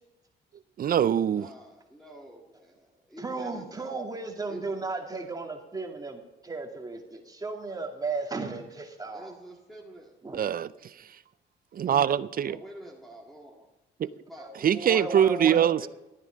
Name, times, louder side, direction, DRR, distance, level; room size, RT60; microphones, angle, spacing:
voice 1, 0.8-1.5 10.3-10.7 11.7-12.6 14.0-14.1 14.6-15.9, right 9 dB, 45° right, 0.5 m, -23 dB
voice 2, 1.4-4.0 4.5-4.7 9.1-10.2 12.4-13.7 14.2-14.8 15.8-15.9, right 1 dB, ahead, 2.0 m, -47 dB
voice 3, 3.2-9.3 10.2-10.4 14.4-15.6, right 3 dB, 20° right, 2.3 m, -35 dB
13.0 x 9.8 x 5.1 m
cardioid pair, 90°, 20 cm